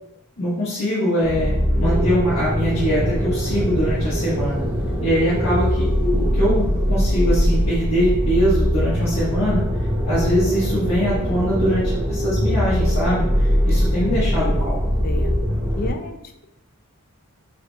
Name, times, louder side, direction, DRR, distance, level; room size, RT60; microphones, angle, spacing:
voice 1, 0.4-4.6 5.0-9.6 10.0-14.8, equal, 75° left, -10 dB, 1.4 m, -22 dB
sound 1, 1.2-15.9, equal, 10° right, 0.6 m, -21 dB
voice 2, 15.0-16.5, left 3 dB, 40° left, 6 dB, 0.4 m, -33 dB
4.1 x 2.3 x 4.0 m, 0.83 s
head